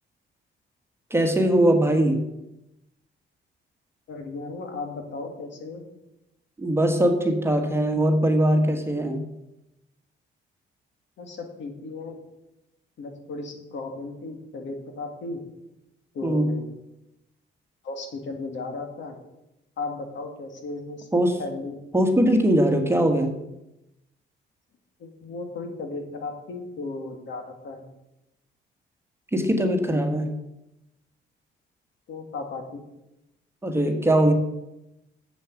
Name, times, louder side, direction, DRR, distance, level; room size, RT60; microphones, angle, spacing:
voice 1, 1.1-2.2 6.6-9.2 16.2-16.5 21.1-21.3 21.9-23.3 29.3-30.3 33.6-34.3, right 1 dB, 10° right, 5 dB, 1.4 m, -21 dB
voice 2, 4.1-5.8 11.2-12.2 13.0-15.4 16.1-16.6 17.8-19.2 19.8-21.1 21.4-21.8 25.0-27.8 32.1-32.8, left 3 dB, 70° left, 5 dB, 2.0 m, -35 dB
7.4 x 7.1 x 7.1 m, 0.91 s
cardioid pair, 90°, 20 cm